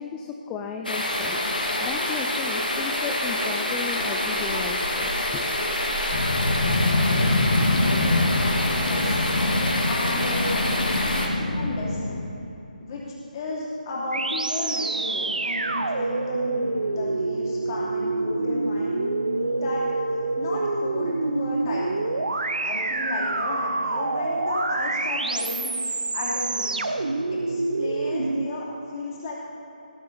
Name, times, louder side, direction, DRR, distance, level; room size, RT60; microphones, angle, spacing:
voice 1, 0.0-1.4 1.8-5.4, left 6 dB, 10° left, 2 dB, 0.4 m, -34 dB
sound 1, 0.8-11.3, left 1 dB, 70° left, 2.3 m, -26 dB
sound 2, 6.1-12.2, left 2 dB, 55° left, 1.6 m, -25 dB
voice 2, 8.7-9.2 9.8-12.3 12.8-13.0 13.3-19.8 20.4-22.2 22.6-25.7 26.1-26.9 27.3-29.3, left 2 dB, 25° left, -5 dB, 3.0 m, -33 dB
sound 3, 14.1-28.5, right 3 dB, 65° right, 0.7 m, -27 dB
18.0 x 8.4 x 4.1 m, 2.9 s
figure-of-eight pair, 150°, 5 cm